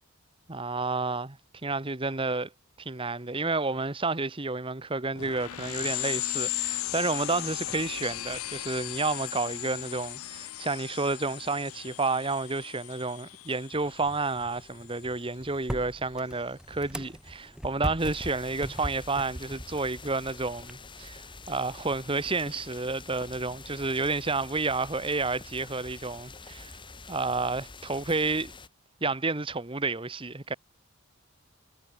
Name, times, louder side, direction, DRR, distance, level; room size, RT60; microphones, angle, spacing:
voice 1, 0.5-2.5 2.8-26.8 27.1-28.5 29.0-30.5, right 3 dB, 25° right, 1.1 m, -30 dB
sound 1, 5.2-15.3, left 16 dB, 75° left, 0.5 m, -37 dB
sound 2, 13.7-20.7, equal, 5° right, 0.4 m, -40 dB
sound 3, 18.0-28.7, left 3 dB, 20° left, 3.4 m, -46 dB
head